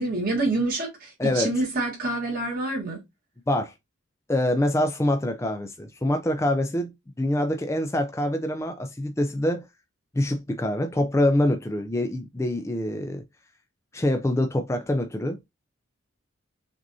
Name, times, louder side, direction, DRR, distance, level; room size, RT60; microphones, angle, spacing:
voice 1, 0.0-3.0, right 2 dB, 45° right, 1.5 m, -27 dB
voice 2, 1.2-1.5 3.5-3.7 4.3-6.9 7.2-9.7 10.1-13.2 13.9-15.4, left 1 dB, 15° left, 0.4 m, -25 dB
6.0 x 2.6 x 2.7 m
head